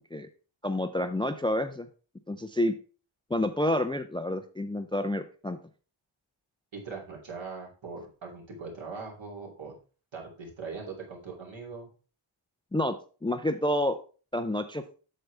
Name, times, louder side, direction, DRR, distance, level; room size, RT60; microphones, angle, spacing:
voice 1, 0.6-1.9 2.3-2.7 3.3-5.6 12.7-13.0 13.2-14.0 14.3-14.8, left 1 dB, 10° left, 9 dB, 0.4 m, -28 dB
voice 2, 6.7-9.7 10.1-11.9, right 4 dB, 65° right, -1 dB, 2.8 m, -41 dB
8.0 x 6.5 x 3.3 m, 0.37 s
wide cardioid pair, 155°, 48 cm